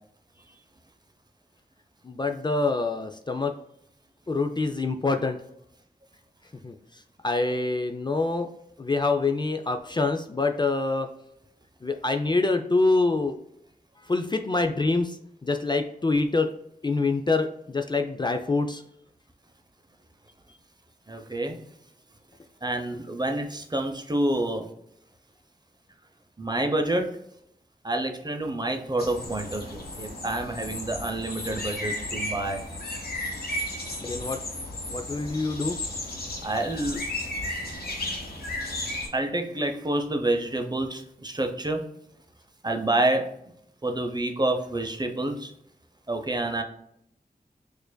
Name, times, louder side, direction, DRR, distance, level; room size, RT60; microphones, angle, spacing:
voice 1, 2.0-3.5 4.3-5.4 6.6-6.7 7.2-8.5 8.8-11.1 11.8-13.4 14.1-16.5 16.8-18.8 34.0-34.4 34.9-35.8, left 3 dB, 30° left, 5 dB, 0.4 m, -25 dB
voice 2, 21.1-21.6 22.6-24.7 26.4-27.2 27.8-32.6 36.4-37.1 39.1-41.8 42.6-43.3 43.8-45.5 46.1-46.6, right 1 dB, 25° right, 4 dB, 0.6 m, -28 dB
sound 1, 29.0-39.1, left 1 dB, 90° left, 0.9 m, -34 dB
4.7 x 2.5 x 2.2 m, 0.73 s
cardioid pair, 45°, 15 cm